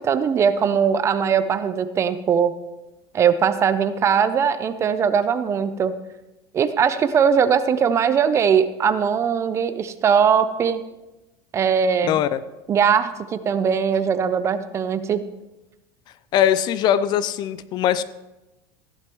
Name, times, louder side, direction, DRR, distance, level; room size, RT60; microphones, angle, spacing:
voice 1, 0.0-2.5 3.1-5.9 6.5-10.8 11.5-12.2 12.7-15.3, right 7 dB, 25° right, 13 dB, 0.5 m, -20 dB
voice 2, 12.0-12.4 16.3-18.0, left 10 dB, 40° left, 15 dB, 0.4 m, -21 dB
15.0 x 11.0 x 3.1 m, 1.0 s
supercardioid pair, 150°, 12 cm